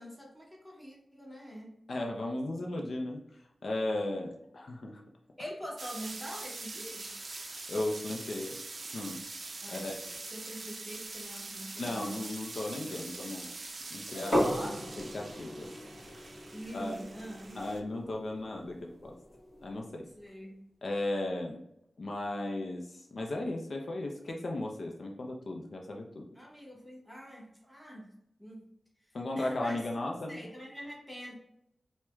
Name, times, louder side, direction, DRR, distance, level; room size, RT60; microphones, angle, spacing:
voice 1, 0.0-1.7 5.4-7.1 9.6-12.3 14.1-14.9 16.5-17.6 20.2-20.6 26.4-28.1 28.4-28.6 29.4-29.8 30.3-31.3, equal, ahead, -2 dB, 0.8 m, -44 dB
voice 2, 1.9-3.2 3.6-5.0 7.7-8.6 8.9-9.2 9.7-10.0 11.8-13.6 13.9-14.4 15.1-15.7 16.7-17.0 17.5-19.1 19.6-20.1 20.8-21.6 22.0-26.3 29.1-30.4, left 2 dB, 65° left, 0 dB, 0.5 m, -36 dB
sound 1, 5.8-17.8, right 3 dB, 50° right, 0.4 m, -44 dB
sound 2, 14.3-20.0, equal, 20° left, 1.2 m, -36 dB
4.5 x 2.1 x 2.3 m, 0.78 s
wide cardioid pair, 135°, 0 cm